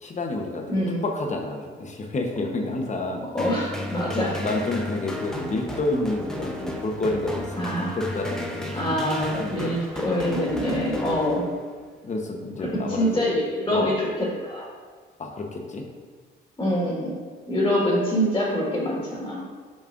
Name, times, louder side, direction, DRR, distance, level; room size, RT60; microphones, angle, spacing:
voice 1, 0.0-3.3 4.4-9.8 12.0-13.2 13.7-14.0 15.2-15.8, left 2 dB, 35° left, 1 dB, 1.0 m, -29 dB
voice 2, 0.7-1.0 3.3-4.4 7.6-8.0 8.7-11.5 12.9-14.7 16.6-17.2 17.5-19.5, equal, 20° left, -5 dB, 1.7 m, -25 dB
sound 1, 3.4-11.9, left 1 dB, 5° left, 0.8 m, -34 dB
7.0 x 5.2 x 2.5 m, 1.5 s
cardioid pair, 90°, 20 cm